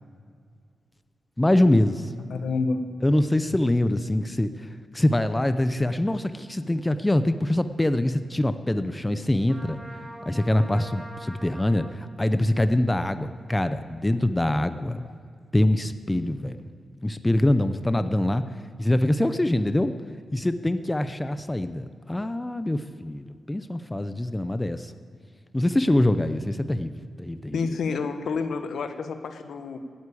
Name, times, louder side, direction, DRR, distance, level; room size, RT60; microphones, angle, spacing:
voice 1, 1.4-2.1 3.0-4.5 4.9-9.8 10.3-15.0 15.5-16.6 17.0-18.4 18.8-19.9 20.3-24.9 25.5-26.9 27.2-27.6, left 1 dB, 10° left, 11 dB, 0.6 m, -24 dB
voice 2, 2.3-2.8 15.0-15.1 27.5-29.8, left 4 dB, 85° left, 9 dB, 1.2 m, -29 dB
Trumpet, 9.5-12.0, right 1 dB, 20° right, 3.0 m, -43 dB
16.0 x 9.5 x 8.5 m, 2.2 s
wide cardioid pair, 140°, 0 cm